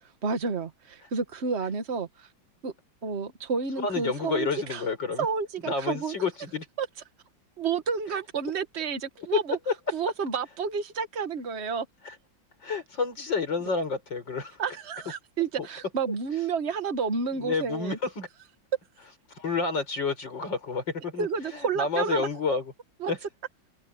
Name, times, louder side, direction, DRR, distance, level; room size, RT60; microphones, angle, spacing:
voice 1, 0.2-2.3 2.6-2.7 3.0-4.8 5.2-6.2 6.8-6.9 7.6-9.6 9.9-11.8 14.6-18.0 21.2-22.3 23.0-23.1, right 5 dB, 35° right, 1.7 m, -30 dB
voice 2, 3.8-5.3 5.7-6.6 9.7-9.8 12.0-12.1 12.6-14.6 15.6-15.7 17.4-18.3 19.4-22.6 23.1-23.2, left 4 dB, 65° left, 6.2 m, -29 dB
open air
omnidirectional pair, 2.2 m